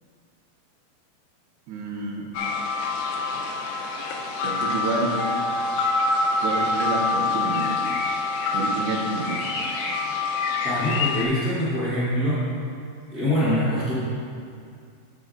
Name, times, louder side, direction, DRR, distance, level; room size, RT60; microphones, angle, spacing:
voice 1, 1.7-2.3 4.4-5.1 6.4-7.8 8.5-9.4, right 2 dB, 85° right, 0 dB, 3.0 m, -29 dB
sound 1, 2.3-11.3, left 3 dB, 90° left, 2.8 m, -26 dB
voice 2, 10.6-12.4 13.1-13.9, equal, 70° left, -11 dB, 0.9 m, -24 dB
14.0 x 6.2 x 2.5 m, 2.3 s
omnidirectional pair, 4.6 m